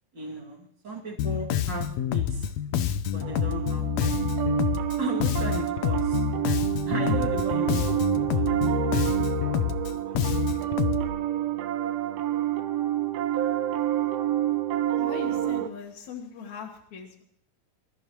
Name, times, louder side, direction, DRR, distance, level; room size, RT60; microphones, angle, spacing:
voice 1, 0.1-2.5 3.1-4.3 5.0-6.2 6.9-9.2 9.9-10.7, right 1 dB, 35° right, -1 dB, 2.6 m, -37 dB
Bass guitar, 1.2-11.1, left 9 dB, 85° left, 1.5 m, -27 dB
Piano, 3.2-15.7, right 12 dB, 85° right, 1.4 m, -28 dB
voice 2, 15.0-17.2, left 5 dB, 60° left, -1 dB, 2.5 m, -40 dB
24.5 x 13.5 x 3.0 m, 0.69 s
omnidirectional pair, 4.1 m